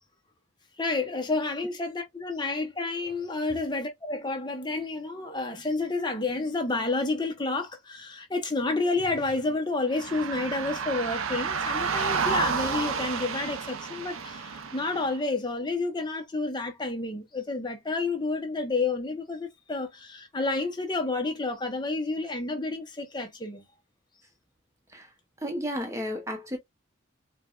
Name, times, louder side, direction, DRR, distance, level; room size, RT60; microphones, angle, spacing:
voice 1, 0.8-23.6, left 3 dB, 20° left, 0.7 m, -30 dB
sound 1, 9.9-15.1, right 5 dB, 90° right, 0.6 m, -30 dB
voice 2, 25.4-26.6, equal, 15° right, 0.7 m, -32 dB
4.5 x 2.2 x 2.3 m
head